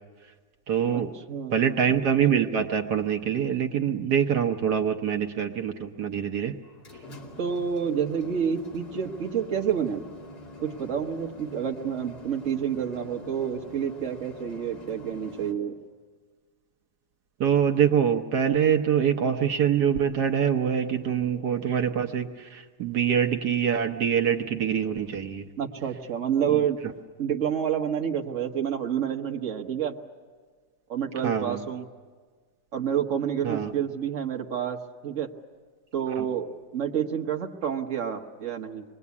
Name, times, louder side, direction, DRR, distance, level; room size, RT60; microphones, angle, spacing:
voice 1, 0.7-1.1 1.5-6.5 17.4-25.5 26.5-26.6 31.2-31.6 33.4-33.7 36.2-36.3, right 8 dB, 75° right, 3 dB, 1.5 m, -25 dB
voice 2, 1.3-1.6 7.4-10.0 10.6-15.8 25.6-26.8 27.2-29.9 30.9-31.8 32.7-34.8 35.0-35.3 35.9-38.8, right 8 dB, 50° right, 3 dB, 1.6 m, -29 dB
sound 1, 6.6-15.5, left 1 dB, 70° left, 3.3 m, -45 dB
26.5 x 21.0 x 8.4 m, 1.5 s
omnidirectional pair, 1.8 m